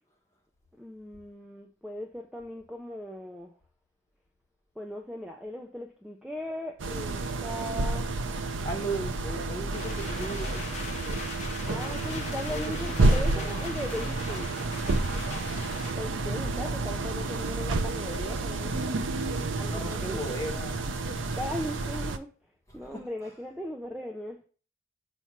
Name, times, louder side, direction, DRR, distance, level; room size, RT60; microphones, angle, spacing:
voice 1, 0.8-3.5 4.8-8.1 11.3-14.5 16.0-18.9 19.6-20.3 21.4-22.3 22.7-24.4, equal, 5° right, 0.4 m, -38 dB
sound 1, 6.8-22.2, right 2 dB, 90° right, 0.6 m, -30 dB
voice 2, 8.6-10.7 11.7-13.6 19.6-20.9 22.9-23.0, right 1 dB, 15° left, 1.4 m, -37 dB
sound 2, 9.7-15.9, left 5 dB, 40° left, 0.8 m, -41 dB
6.8 x 3.1 x 5.7 m
head